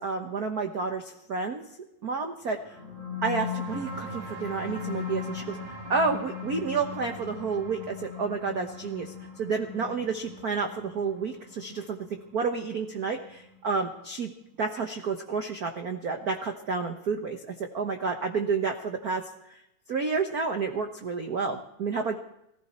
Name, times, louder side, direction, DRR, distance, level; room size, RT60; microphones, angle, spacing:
voice 1, 0.0-1.6 2.0-2.8 3.2-12.0 12.3-14.3 14.6-19.2 19.5-19.6 19.9-22.2, right 4 dB, 70° right, 5 dB, 0.9 m, -30 dB
sound 1, 2.6-13.6, left 5 dB, 85° right, 4.2 m, -38 dB
20.0 x 15.0 x 4.4 m, 0.82 s
omnidirectional pair, 3.4 m